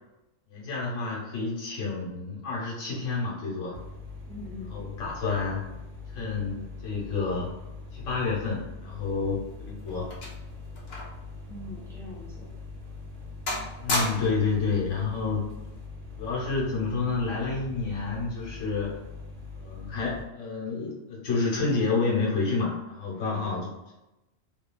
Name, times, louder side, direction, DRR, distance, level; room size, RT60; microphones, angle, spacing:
voice 1, 0.5-3.8 4.7-5.6 6.1-7.5 7.9-10.1 13.8-15.4 16.2-19.0 19.6-23.7, left 4 dB, 90° left, -4 dB, 1.2 m, -29 dB
sound 1, 3.7-20.2, left 3 dB, 70° right, 1.0 m, -42 dB
voice 2, 4.2-4.8 11.4-12.5 23.1-23.5, left 1 dB, 5° left, -6 dB, 0.5 m, -43 dB
sound 2, 9.2-11.3 11.6-11.7 12.4-12.5 12.9-13.2 13.5-14.5 15.5-15.8, left 1 dB, 50° left, 0.6 m, -33 dB
2.7 x 2.7 x 2.2 m, 0.97 s
omnidirectional pair, 1.3 m